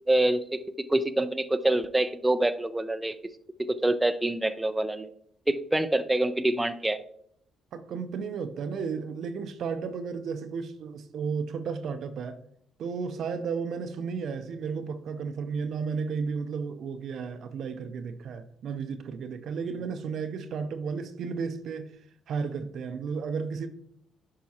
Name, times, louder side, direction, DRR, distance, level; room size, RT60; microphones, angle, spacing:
voice 1, 0.1-3.2 3.6-5.1 5.5-7.0, right 1 dB, 10° right, 0.5 m, -26 dB
voice 2, 7.7-12.4 12.8-21.9 22.3-23.7, right 5 dB, 65° right, 0.6 m, -33 dB
10.5 x 4.6 x 2.8 m
supercardioid pair, 65°, 0 cm